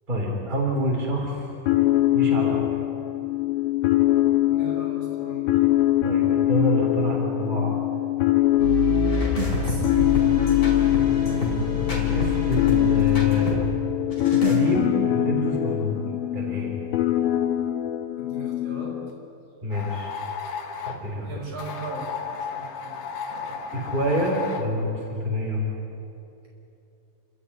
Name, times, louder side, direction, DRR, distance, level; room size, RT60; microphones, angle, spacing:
voice 1, 0.1-1.5 2.1-2.7 6.0-7.8 11.2-13.6 14.3-16.1 16.3-16.8 19.6-20.1 20.8-21.3 23.7-25.6, equal, 15° right, -1 dB, 3.5 m, -27 dB
sound 1, 1.7-19.1, left 14 dB, 90° left, 3.0 m, -23 dB
voice 2, 4.5-5.5 9.6-10.2 18.2-18.9 21.2-23.0 23.3-23.9, right 3 dB, 55° right, -4 dB, 7.1 m, -39 dB
sound 2, 8.6-13.6 14.1-14.6, left 2 dB, 40° left, 5.3 m, -27 dB
sound 3, 19.7-21.0 21.6-24.7, left 6 dB, 65° left, 2.9 m, -34 dB
29.5 x 13.0 x 9.8 m, 2.8 s
omnidirectional pair, 4.1 m